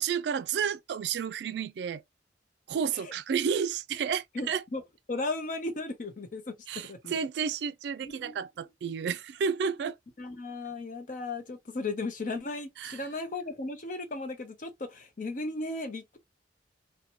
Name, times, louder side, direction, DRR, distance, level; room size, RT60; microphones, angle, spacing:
voice 1, 0.0-2.0 2.7-4.6 6.7-10.0 12.8-13.0, right 7 dB, 65° right, 0.3 m, -31 dB
voice 2, 4.3-4.8 5.1-6.6 6.8-7.2 8.0-8.3 10.2-16.2, left 2 dB, 45° left, 0.6 m, -36 dB
2.9 x 2.2 x 2.5 m
head